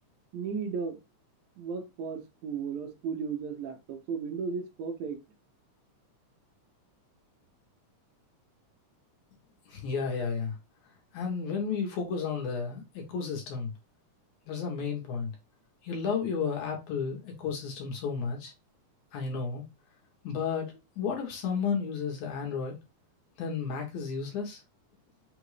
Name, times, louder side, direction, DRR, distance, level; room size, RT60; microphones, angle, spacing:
voice 1, 0.3-1.0 1.6-5.2, right 5 dB, 70° right, 2.1 m, -35 dB
voice 2, 9.7-10.6 11.1-13.7 14.5-15.3 15.8-18.5 19.1-19.6 20.2-22.8 23.4-24.6, left 5 dB, 70° left, 2.5 m, -32 dB
5.7 x 2.6 x 3.2 m
omnidirectional pair, 3.7 m